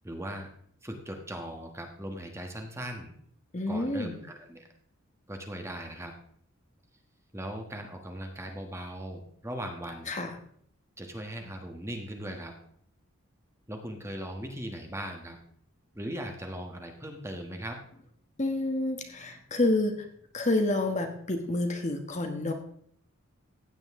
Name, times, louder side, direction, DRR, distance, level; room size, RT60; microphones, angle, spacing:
voice 1, 0.0-0.5 0.8-3.1 3.7-4.6 5.3-6.1 7.3-10.1 11.0-12.5 13.7-15.4 15.9-17.8, right 1 dB, 10° right, 3 dB, 1.4 m, -39 dB
voice 2, 3.5-4.2 10.1-10.3 18.4-20.1 20.3-22.5, left 2 dB, 30° left, 4 dB, 1.3 m, -28 dB
15.5 x 9.0 x 3.7 m, 0.64 s
head